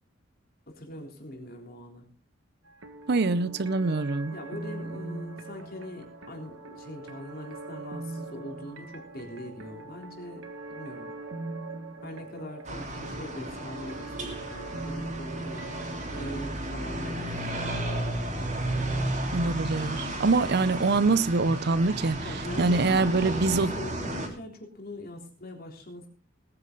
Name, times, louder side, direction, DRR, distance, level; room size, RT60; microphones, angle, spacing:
voice 1, 0.7-2.1 4.3-11.1 12.0-18.0 22.2-26.1, left 1 dB, 50° left, 3.7 m, -42 dB
sound 1, 2.7-19.1, right 2 dB, 85° right, 1.7 m, -42 dB
voice 2, 3.1-4.4 19.3-22.2 22.6-23.7, right 3 dB, 55° right, 0.6 m, -24 dB
sound 2, 12.6-24.3, right 1 dB, 35° right, 3.3 m, -33 dB
20.0 x 9.7 x 3.9 m
head